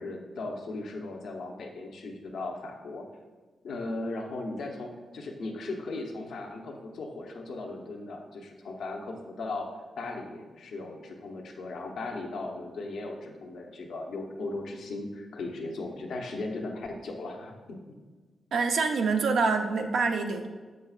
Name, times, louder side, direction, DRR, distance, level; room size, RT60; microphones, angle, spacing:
voice 1, 0.0-3.0 3.6-9.7 10.0-18.0, left 2 dB, 80° left, 1 dB, 0.9 m, -37 dB
voice 2, 18.5-20.5, right 4 dB, 75° right, 4 dB, 0.6 m, -26 dB
7.8 x 6.3 x 2.4 m, 1.4 s
supercardioid pair, 55°, 0 cm